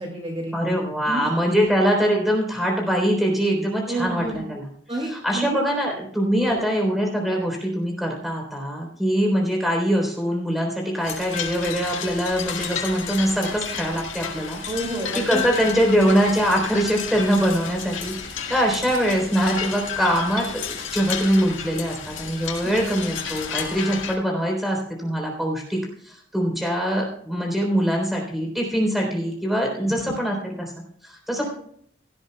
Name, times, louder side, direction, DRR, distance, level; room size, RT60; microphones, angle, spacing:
voice 1, 0.0-0.6 1.0-1.3 1.6-1.7 3.9-4.4 4.9-5.6 6.4-6.6 14.6-15.5 22.6-22.8 29.8-30.1, right 1 dB, 30° right, -1 dB, 2.3 m, -29 dB
voice 2, 0.5-4.6 5.2-14.6 15.1-30.7 31.0-31.5, equal, ahead, 0 dB, 3.6 m, -23 dB
sound 1, 11.0-24.1, left 7 dB, 85° left, 2.1 m, -32 dB
17.0 x 12.5 x 2.3 m, 0.64 s
head